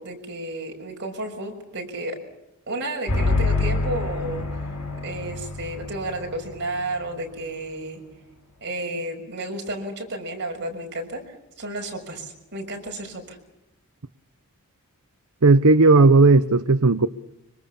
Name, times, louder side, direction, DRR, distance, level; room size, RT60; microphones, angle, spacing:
voice 1, 0.0-2.2 2.7-4.7 5.0-8.0 8.6-13.4, right 2 dB, 50° right, 2 dB, 6.1 m, -32 dB
sound 1, 3.1-6.6, left 3 dB, 85° left, 6.5 m, -26 dB
voice 2, 15.4-17.1, right 3 dB, 75° right, 11 dB, 0.8 m, -15 dB
25.5 x 24.5 x 7.1 m, 0.87 s
head